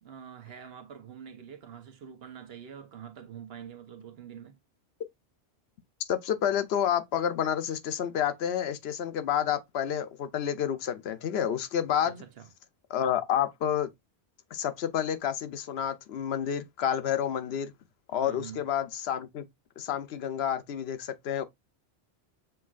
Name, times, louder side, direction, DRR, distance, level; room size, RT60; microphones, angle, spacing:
voice 1, 0.0-4.6 12.0-12.5 18.2-18.6, right 8 dB, 70° right, 1.0 m, -45 dB
voice 2, 6.1-12.2 12.9-13.9 14.5-17.7 18.1-19.5 19.8-21.4, left 9 dB, 75° left, 0.9 m, -29 dB
6.7 x 3.1 x 2.4 m
omnidirectional pair, 1.1 m